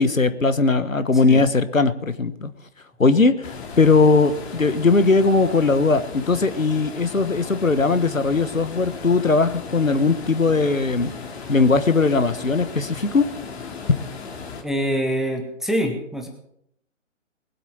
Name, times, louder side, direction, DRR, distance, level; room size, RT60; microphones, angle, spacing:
voice 1, 0.0-2.5 3.0-11.1 11.5-13.3, left 4 dB, 85° left, 12 dB, 1.4 m, -19 dB
sound 1, 3.4-14.6, left 5 dB, 55° left, 2.8 m, -36 dB
voice 2, 14.6-16.3, equal, ahead, 2 dB, 0.7 m, -25 dB
20.0 x 8.6 x 7.1 m, 0.74 s
figure-of-eight pair, 130°, 39 cm